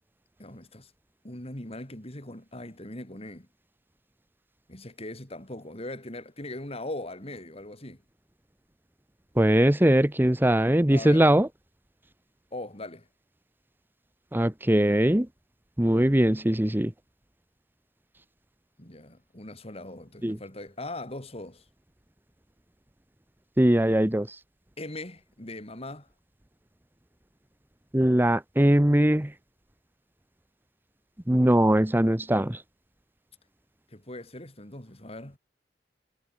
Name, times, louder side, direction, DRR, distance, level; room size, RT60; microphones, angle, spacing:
voice 1, 0.4-0.9 1.2-3.5 4.7-8.0 10.9-11.3 12.5-13.1 18.8-21.6 24.8-26.1 33.9-35.4, left 1 dB, 35° left, 4.6 m, -40 dB
voice 2, 9.4-11.5 14.3-15.3 15.8-16.9 20.2-20.4 23.6-24.4 27.9-29.3 31.3-32.6, right 1 dB, 10° right, 0.9 m, -21 dB
head